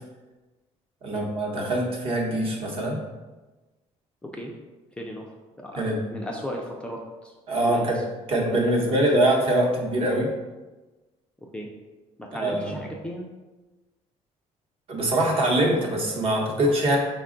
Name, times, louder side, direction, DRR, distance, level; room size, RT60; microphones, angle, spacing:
voice 1, 1.0-3.0 5.8-6.0 7.5-8.0 8.3-10.3 12.3-12.8 14.9-17.0, right 1 dB, 50° right, 0 dB, 0.9 m, -23 dB
voice 2, 4.2-4.5 5.0-5.3 5.6-7.3 7.6-8.0 8.5-8.9 11.5-11.7 12.2-13.2, equal, 10° left, -1 dB, 0.4 m, -36 dB
5.0 x 2.2 x 3.7 m, 1.2 s
cardioid pair, 145°, 13 cm